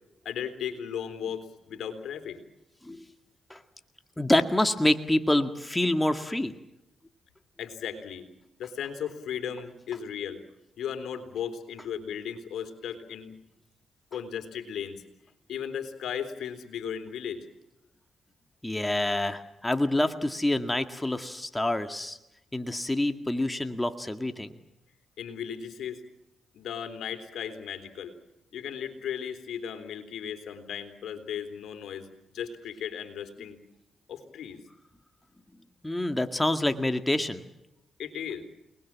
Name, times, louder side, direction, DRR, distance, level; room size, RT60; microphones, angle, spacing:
voice 1, 0.3-2.4 7.6-8.3 8.6-10.4 10.8-13.3 14.1-15.0 15.5-17.5 25.2-26.0 26.5-28.1 28.5-33.6 34.1-34.6 38.0-38.4, left 8 dB, 75° left, 8 dB, 3.6 m, -36 dB
voice 2, 4.2-6.5 18.6-22.2 22.5-24.6 35.8-37.4, left 1 dB, 15° left, 7 dB, 2.0 m, -27 dB
29.5 x 20.5 x 7.5 m, 0.88 s
supercardioid pair, 60°, 0 cm